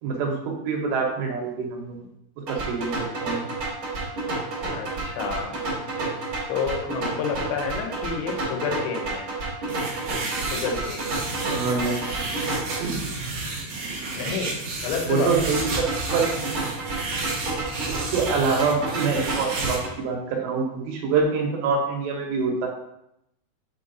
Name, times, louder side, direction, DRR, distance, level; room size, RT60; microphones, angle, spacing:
voice 1, 0.0-2.0 2.5-3.4 11.4-12.0 12.8-13.1 15.0-16.3 17.9-22.7, right 5 dB, 80° right, 0 dB, 3.1 m, -25 dB
sound 1, 2.5-12.8 15.5-19.9, right 2 dB, 35° right, 2.5 m, -31 dB
voice 2, 4.7-5.6 6.5-9.3 10.5-11.1 14.1-15.3, left 6 dB, 80° left, 2 dB, 2.9 m, -30 dB
sound 2, 9.7-19.8, right 3 dB, 65° right, 1.7 m, -31 dB
8.3 x 4.3 x 2.7 m, 0.80 s
omnidirectional pair, 5.0 m